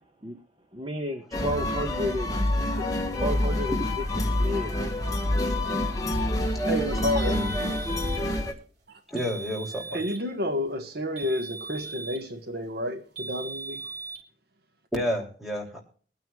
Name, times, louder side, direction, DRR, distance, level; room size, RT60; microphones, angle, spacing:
voice 1, 0.7-3.8 4.3-5.4, left 1 dB, 30° right, 1.2 m, -33 dB
sound 1, 1.3-8.5, left 1 dB, 20° left, 1.7 m, -27 dB
voice 2, 6.7-7.4 8.9-9.0 9.9-13.8, left 1 dB, 60° right, 1.3 m, -30 dB
sound 2, 7.2-8.3 9.2-10.3 11.2-12.3 13.2-14.2, right 4 dB, 85° right, 2.8 m, -39 dB
voice 3, 9.1-10.0 14.9-15.8, equal, ahead, 2.8 m, -30 dB
22.5 x 9.4 x 2.3 m
head